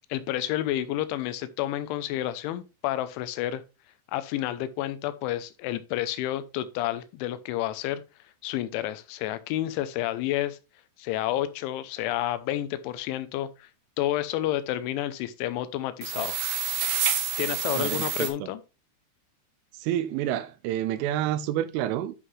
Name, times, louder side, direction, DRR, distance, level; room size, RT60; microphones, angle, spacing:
voice 1, 0.1-3.6 4.1-8.0 8.4-10.6 11.0-13.7 14.0-16.4 17.4-18.6, left 13 dB, 85° left, 3.0 m, -30 dB
sound 1, 16.0-18.3, right 8 dB, 60° right, 2.5 m, -28 dB
voice 2, 17.8-18.5 19.8-22.1, right 12 dB, 80° right, 3.1 m, -29 dB
11.0 x 5.7 x 3.2 m
omnidirectional pair, 5.7 m